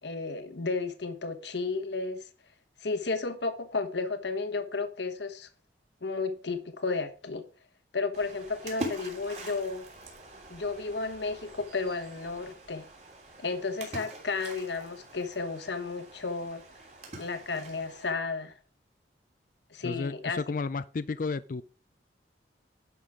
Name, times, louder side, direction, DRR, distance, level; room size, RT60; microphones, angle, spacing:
voice 1, 0.0-2.3 2.8-5.5 6.0-7.4 7.9-9.9 10.5-12.9 13.4-16.6 17.2-18.5 19.7-20.4, left 4 dB, 70° left, 1.2 m, -33 dB
Splash splatter, 8.1-18.1, right 1 dB, 40° right, 3.1 m, -44 dB
voice 2, 19.8-21.6, left 4 dB, 45° left, 0.4 m, -32 dB
11.0 x 6.2 x 5.0 m
head